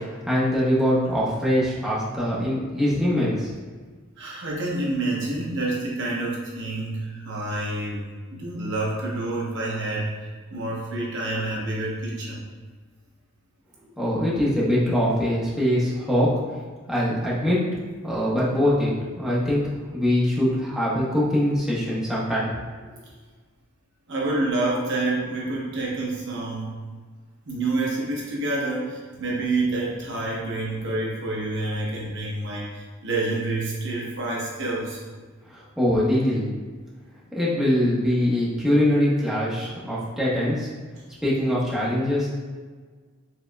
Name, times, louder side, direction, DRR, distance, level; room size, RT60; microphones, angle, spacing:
voice 1, 0.2-3.5 14.0-16.3 16.9-17.6 18.0-19.6 19.9-22.5 35.5-36.5 37.3-40.7 41.2-42.3, equal, 5° right, -8 dB, 0.9 m, -23 dB
voice 2, 4.2-12.4 24.1-26.7 27.5-35.0, right 2 dB, 60° right, -3 dB, 0.8 m, -28 dB
4.4 x 3.6 x 2.3 m, 1.5 s
head